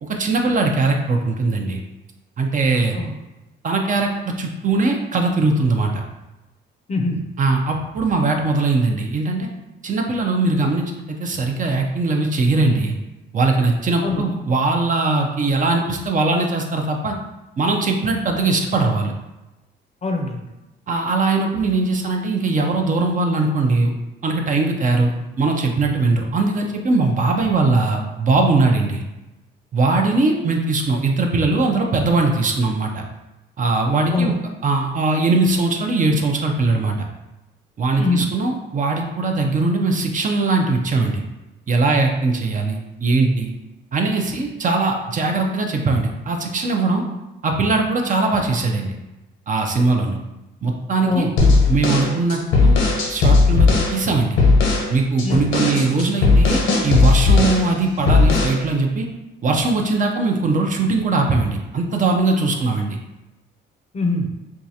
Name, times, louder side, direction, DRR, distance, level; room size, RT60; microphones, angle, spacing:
voice 1, 0.0-1.8 2.4-3.0 3.6-4.1 4.4-6.0 7.4-9.5 9.8-12.9 13.3-17.2 17.6-19.1 20.9-23.9 24.2-29.0 29.7-33.0 33.6-34.3 34.6-37.0 37.8-41.2 41.7-43.5 43.9-47.0 47.4-48.9 49.5-50.2 50.6-52.8 53.1-54.4 54.9-59.1 59.4-63.0, right 3 dB, 40° right, 2 dB, 0.5 m, -20 dB
voice 2, 6.9-7.2 14.0-14.3 20.0-20.4 34.1-34.3 38.0-38.3 51.0-51.3 55.2-55.4 63.9-64.3, left 3 dB, 35° left, 2 dB, 0.6 m, -22 dB
sound 1, 51.4-53.9 54.4-54.9 55.2-57.7 58.1-58.6, left 3 dB, 90° left, 0.9 m, -16 dB
4.6 x 2.3 x 2.7 m, 1.0 s
cardioid pair, 90°, 20 cm